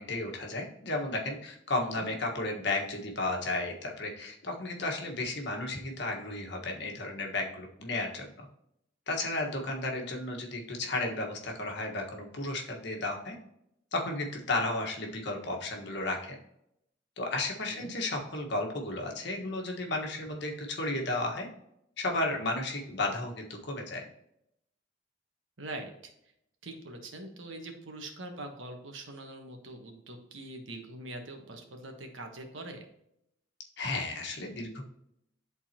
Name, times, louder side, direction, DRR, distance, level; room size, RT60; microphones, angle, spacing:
voice 1, 0.0-8.4 9.1-13.3 13.9-16.4 17.2-21.5 22.0-24.0 33.8-34.8, left 2 dB, 60° left, 1 dB, 1.5 m, -33 dB
voice 2, 1.8-2.1 17.7-17.9 25.6-26.1 26.6-32.9, right 2 dB, 80° right, 4 dB, 1.3 m, -43 dB
11.0 x 4.0 x 2.9 m, 0.77 s
head